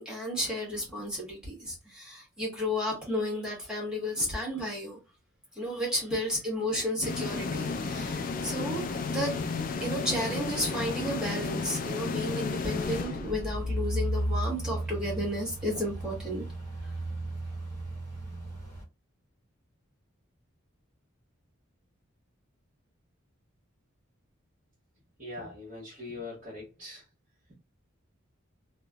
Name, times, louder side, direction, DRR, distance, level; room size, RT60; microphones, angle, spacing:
voice 1, 0.0-5.0 5.6-8.8 9.1-9.4 9.8-16.4, equal, 5° right, 1.2 m, -32 dB
sound 1, 7.0-13.8, left 4 dB, 40° left, 0.3 m, -33 dB
sound 2, 12.6-18.8, right 1 dB, 15° left, 1.1 m, -34 dB
voice 2, 25.2-27.0, left 2 dB, 35° right, 1.1 m, -41 dB
3.1 x 2.1 x 2.3 m
head